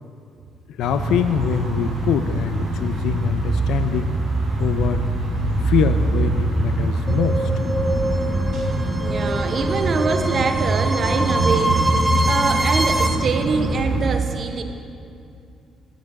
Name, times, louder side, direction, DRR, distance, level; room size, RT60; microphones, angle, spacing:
voice 1, 0.7-4.1 4.6-5.1 5.6-7.5, left 8 dB, 85° left, 10 dB, 0.3 m, -24 dB
sound 1, 0.8-14.0, right 2 dB, 80° right, 2.2 m, -23 dB
sound 2, 7.1-13.1, right 1 dB, 10° right, 0.6 m, -25 dB
voice 2, 9.0-14.6, right 4 dB, 50° right, 7 dB, 0.7 m, -25 dB
9.3 x 8.8 x 3.6 m, 2.5 s
cardioid pair, 90°, 0 cm